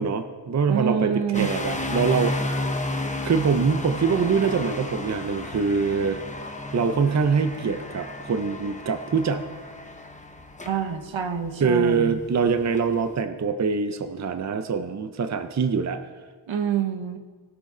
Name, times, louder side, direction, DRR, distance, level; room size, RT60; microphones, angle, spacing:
voice 1, 0.0-2.3 3.2-6.2 6.7-9.5 11.6-16.0, right 5 dB, 40° right, 9 dB, 0.6 m, -24 dB
voice 2, 0.7-1.5 10.6-12.2 16.5-17.2, right 7 dB, 80° right, 7 dB, 1.1 m, -26 dB
sound 1, 1.3-13.1, left 2 dB, 15° left, 0.8 m, -33 dB
20.5 x 6.9 x 3.8 m, 1.5 s
wide cardioid pair, 130°, 45 cm